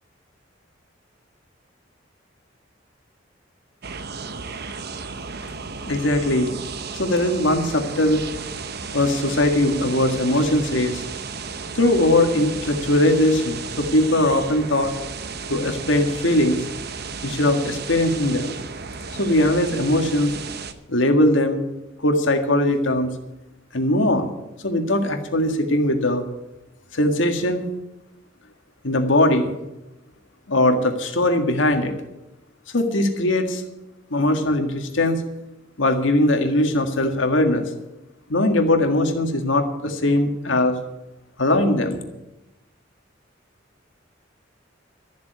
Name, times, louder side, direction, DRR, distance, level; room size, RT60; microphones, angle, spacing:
sound 1, 3.8-20.7, right 5 dB, 55° right, 0.9 m, -34 dB
voice 1, 5.8-6.6 6.9-8.2 8.9-11.0 11.7-14.9 15.5-16.6 17.2-18.5 19.2-20.3 20.9-21.6 22.0-23.1 23.7-24.3 24.6-26.2 26.9-27.6 28.8-29.6 30.5-31.9 32.7-33.6 34.1-35.2 35.8-37.6 38.3-40.7 41.4-42.0, left 1 dB, 80° left, 5 dB, 1.8 m, -20 dB
13.0 x 7.3 x 9.7 m, 0.95 s
head